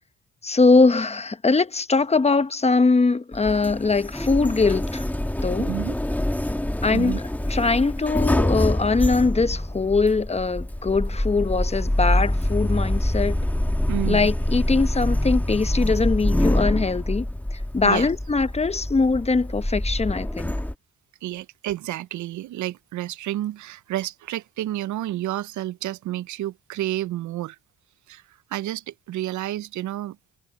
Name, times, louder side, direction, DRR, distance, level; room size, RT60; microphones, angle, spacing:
voice 1, 0.4-5.0 5.4-5.7 6.8-7.2 7.5-13.4 14.1-17.3 17.5-20.6, left 3 dB, 20° left, 0.9 m, -21 dB
Sliding door, 3.3-20.7, left 1 dB, 5° left, 1.4 m, -25 dB
voice 2, 5.6-5.9 6.9-7.2 13.9-14.3 17.8-18.1 21.2-27.6 28.1-30.2, right 14 dB, 75° right, 0.6 m, -30 dB
cardioid pair, 90°, 30 cm